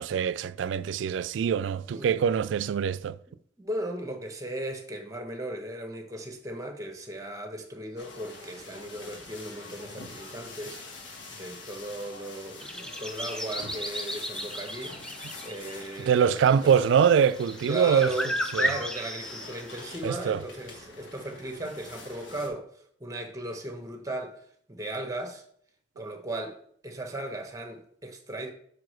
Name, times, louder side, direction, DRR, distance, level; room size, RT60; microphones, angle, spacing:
voice 1, 0.0-3.2 16.0-18.1 18.5-18.7 20.0-20.4, right 7 dB, 75° right, 0.3 m, -24 dB
voice 2, 1.8-2.2 3.6-10.8 11.3-15.2 15.4-16.7 17.7-22.7 23.0-24.4 24.7-25.4 26.0-28.5, right 1 dB, 15° right, 0.9 m, -37 dB
sound 1, 8.0-22.5, left 3 dB, 75° left, 1.3 m, -45 dB
sound 2, 12.6-19.9, equal, 5° left, 0.5 m, -34 dB
4.9 x 4.7 x 6.2 m
head